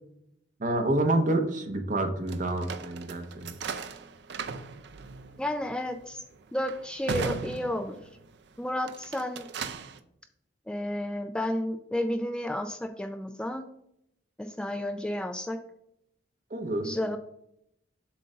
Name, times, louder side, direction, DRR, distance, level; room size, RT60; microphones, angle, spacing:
voice 1, 0.6-3.6 16.5-16.9, right 2 dB, 45° right, 5 dB, 1.0 m, -28 dB
sound 1, 2.3-8.3 8.8-10.0, right 4 dB, 65° right, 0.5 m, -38 dB
voice 2, 5.4-6.2 6.5-8.0 8.6-9.4 10.7-13.6 14.4-15.6 16.8-17.2, left 1 dB, 5° left, 7 dB, 0.3 m, -31 dB
7.5 x 2.6 x 5.5 m, 0.75 s
head